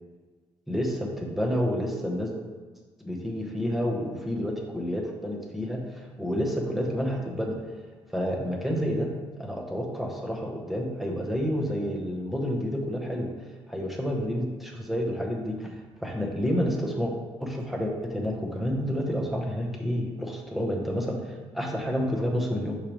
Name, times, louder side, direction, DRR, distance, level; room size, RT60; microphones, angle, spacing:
voice 1, 0.7-2.3 3.0-7.6 8.1-9.1 9.4-13.3 13.7-17.1 17.4-22.8, equal, ahead, -1 dB, 0.7 m, -29 dB
6.5 x 4.9 x 3.0 m, 1.4 s
cardioid pair, 170°, 11 cm